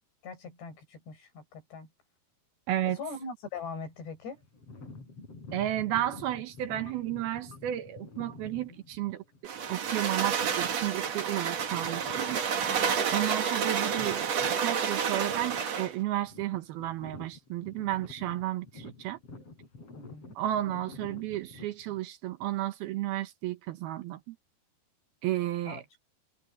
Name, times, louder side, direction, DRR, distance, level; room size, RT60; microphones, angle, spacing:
voice 1, 0.2-1.9 2.8-4.4 19.9-20.3 25.7-25.8, left 4 dB, 75° left, 8.5 m, -41 dB
voice 2, 2.7-3.0 5.5-9.2 9.7-12.4 13.1-14.3 14.6-19.2 20.4-24.4 25.2-25.8, right 14 dB, 70° right, 2.7 m, -32 dB
sound 1, 4.3-22.0, left 3 dB, 35° left, 6.0 m, -49 dB
sound 2, 9.5-15.9, right 7 dB, 50° right, 2.4 m, -30 dB
omnidirectional pair, 4.9 m